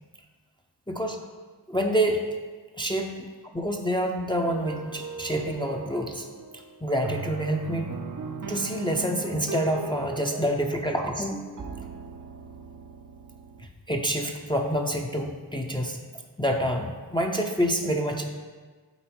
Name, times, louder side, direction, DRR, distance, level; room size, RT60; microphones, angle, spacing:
voice 1, 0.9-1.2 1.7-2.3 2.8-3.3 3.5-6.2 6.8-7.9 8.5-11.7 13.9-16.0 16.4-18.2, equal, 10° left, 1 dB, 0.7 m, -27 dB
sound 1, 4.3-13.7, right 5 dB, 40° right, 0.7 m, -39 dB
8.0 x 4.2 x 6.0 m, 1.4 s
wide cardioid pair, 50°, 48 cm